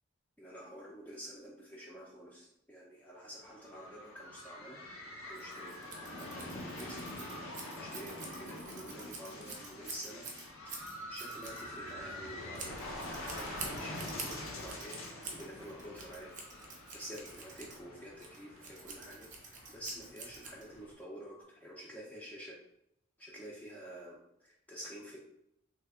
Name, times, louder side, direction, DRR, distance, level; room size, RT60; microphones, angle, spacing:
voice 1, 0.4-4.8 5.3-5.8 6.2-7.1 7.7-10.3 11.1-15.0 15.3-16.3 16.9-22.6 23.2-25.2, equal, 10° left, -5 dB, 0.4 m, -49 dB
sound 1, 3.3-20.9, left 1 dB, 85° left, 0.7 m, -46 dB
Scissors, 5.3-21.0, right 3 dB, 40° right, 0.6 m, -48 dB
3.2 x 2.2 x 3.5 m, 0.78 s
head